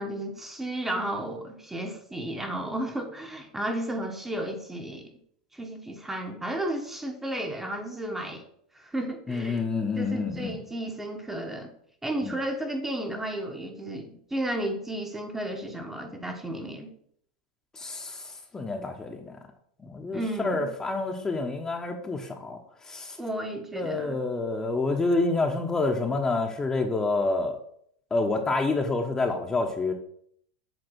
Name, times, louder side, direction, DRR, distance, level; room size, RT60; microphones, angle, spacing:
voice 1, 0.0-5.1 5.5-8.4 8.7-9.6 10.0-11.7 12.0-16.9 20.1-20.7 23.2-24.2, right 1 dB, 10° right, 3 dB, 1.1 m, -33 dB
voice 2, 9.3-10.6 12.2-12.3 17.8-19.4 19.8-22.6 22.9-23.2 23.7-27.6 28.1-29.9, left 3 dB, 15° left, 3 dB, 1.0 m, -28 dB
7.9 x 3.3 x 6.3 m, 0.65 s
hypercardioid pair, 115°, 4 cm